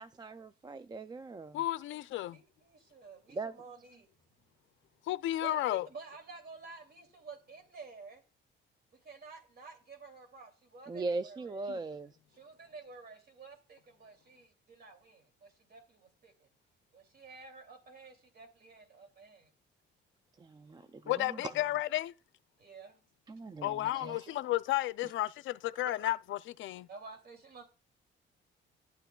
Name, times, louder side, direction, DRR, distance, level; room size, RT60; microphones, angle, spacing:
voice 1, 0.0-1.6 3.3-3.5 10.9-12.2 20.4-21.7 23.3-24.4 25.0-25.1 25.8-26.1, right 3 dB, 20° right, 0.3 m, -40 dB
voice 2, 1.5-2.4 5.1-5.9 21.1-22.1 23.6-26.9, left 15 dB, 75° left, 0.4 m, -33 dB
voice 3, 2.1-4.1 5.4-8.2 9.0-11.6 12.4-16.5 16.9-19.5 22.6-23.0 26.9-27.6, right 4 dB, 50° right, 2.6 m, -51 dB
10.5 x 9.0 x 2.3 m
cardioid pair, 90°, 20 cm